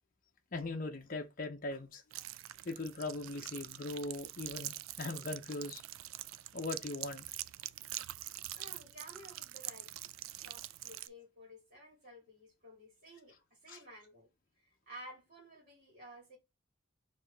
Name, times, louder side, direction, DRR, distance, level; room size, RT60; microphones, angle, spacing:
voice 1, 0.5-2.0 2.6-5.8 6.5-7.3 13.7-13.8, left 2 dB, 45° left, 0.7 m, -40 dB
sound 1, 2.1-11.1, right 14 dB, 75° right, 0.3 m, -45 dB
voice 2, 8.3-9.9 10.3-14.3 14.6-16.4, equal, 45° right, 2.1 m, -54 dB
4.5 x 3.0 x 3.9 m
head